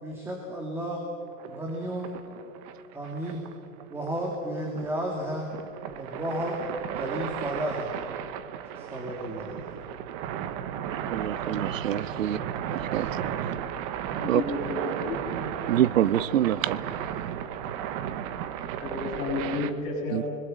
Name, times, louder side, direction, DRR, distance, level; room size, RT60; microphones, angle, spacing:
voice 1, 0.0-1.0 1.5-2.2 2.9-3.4 3.9-5.5 5.9-6.6 6.9-7.9 8.8-9.6, right 1 dB, 5° right, -1 dB, 2.4 m, -33 dB
sound 1, 1.4-19.7, right 9 dB, 25° right, 1.0 m, -35 dB
voice 2, 10.9-12.4 12.7-13.1 14.3-14.4 15.7-16.8 20.1-20.2, right 11 dB, 65° right, 16 dB, 1.0 m, -26 dB
voice 3, 14.2-15.1 18.8-20.3, left 3 dB, 30° left, -2 dB, 7.3 m, -31 dB
27.5 x 21.0 x 7.7 m, 2.4 s
hypercardioid pair, 160°, 42 cm